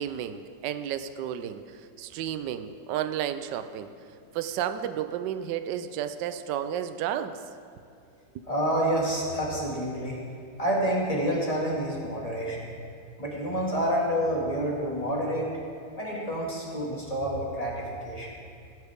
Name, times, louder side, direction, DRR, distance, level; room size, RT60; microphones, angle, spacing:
voice 1, 0.0-3.9 4.3-7.4, right 10 dB, 75° right, 10 dB, 1.2 m, -32 dB
voice 2, 8.5-10.2 10.6-12.7 13.2-15.5 16.0-18.3, equal, 20° left, -4 dB, 2.2 m, -28 dB
16.0 x 11.0 x 3.6 m, 2.4 s
omnidirectional pair, 2.0 m